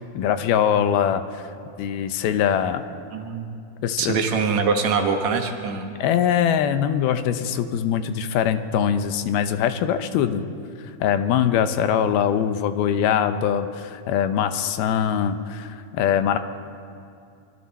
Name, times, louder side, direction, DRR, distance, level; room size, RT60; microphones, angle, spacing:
voice 1, 0.0-1.4 1.8-2.8 3.8-4.1 6.0-10.4 11.0-16.4, left 9 dB, 80° left, 9 dB, 2.6 m, -22 dB
voice 2, 3.1-3.5 4.0-5.9, right 5 dB, 55° right, 3 dB, 2.2 m, -23 dB
25.0 x 24.5 x 4.2 m, 2.4 s
omnidirectional pair, 4.5 m